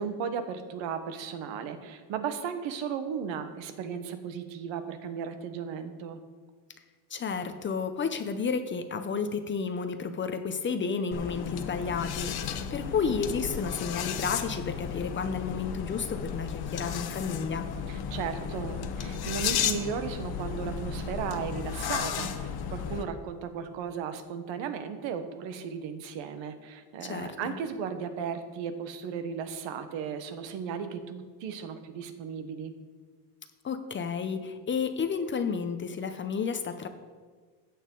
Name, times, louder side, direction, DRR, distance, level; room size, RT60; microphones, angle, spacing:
voice 1, 0.0-6.2 17.9-32.7, right 7 dB, 75° right, 9 dB, 1.2 m, -35 dB
voice 2, 7.1-17.7 27.0-27.6 33.6-36.9, left 5 dB, 25° left, 8 dB, 0.6 m, -31 dB
sound 1, 11.1-23.0, left 8 dB, 55° left, 1.0 m, -34 dB
15.0 x 8.6 x 3.8 m, 1.5 s
cardioid pair, 150°, 46 cm